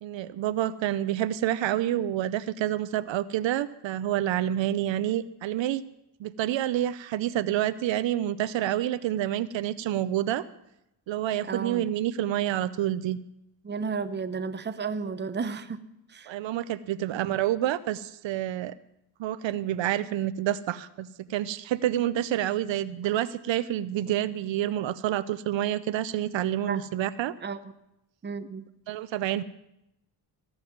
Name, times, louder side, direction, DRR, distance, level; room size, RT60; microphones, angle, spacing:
voice 1, 0.0-5.8 6.2-10.4 11.1-13.2 16.3-18.7 19.2-27.3 28.9-29.4, right 12 dB, 80° right, 14 dB, 0.7 m, -28 dB
voice 2, 11.4-11.9 13.6-15.8 16.1-16.3 17.1-17.2 26.7-26.8 27.4-27.6 28.2-28.6, right 5 dB, 25° right, 10 dB, 0.7 m, -33 dB
15.5 x 5.6 x 9.2 m, 0.86 s
cardioid pair, 105°, 44 cm